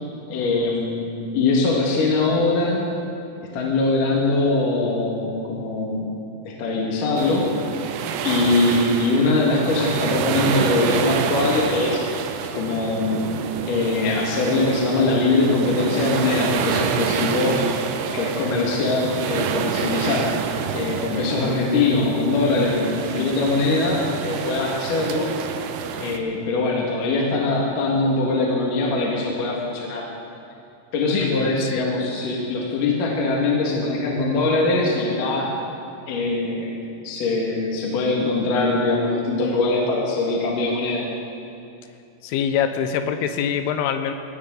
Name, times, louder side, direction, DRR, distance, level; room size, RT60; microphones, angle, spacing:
voice 1, 0.3-2.8 3.5-6.1 6.4-7.9 8.2-12.0 12.5-13.4 13.7-17.7 18.1-20.3 20.7-25.3 26.0-30.1 30.9-35.5 36.1-36.8 37.0-41.1, left 3 dB, 55° left, -3 dB, 2.8 m, -22 dB
sound 1, 7.2-26.2, right 7 dB, 85° right, 3.2 m, -28 dB
voice 2, 31.2-31.8 42.2-44.1, left 8 dB, 80° left, 8 dB, 3.3 m, -24 dB
20.5 x 17.5 x 3.9 m, 2.6 s
omnidirectional pair, 5.6 m